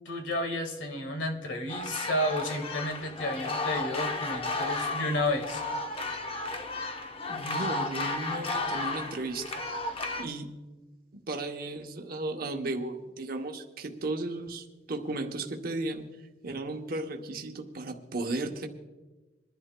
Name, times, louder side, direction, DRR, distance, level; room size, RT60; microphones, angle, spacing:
voice 1, 0.1-5.6, left 1 dB, 85° left, 4 dB, 1.7 m, -31 dB
sound 1, 1.7-10.2, left 2 dB, 30° left, 0.7 m, -33 dB
voice 2, 7.3-9.5 10.2-10.5 11.1-16.0 16.4-18.7, right 2 dB, 50° right, 3 dB, 0.8 m, -35 dB
27.0 x 11.0 x 2.2 m, 1.2 s
head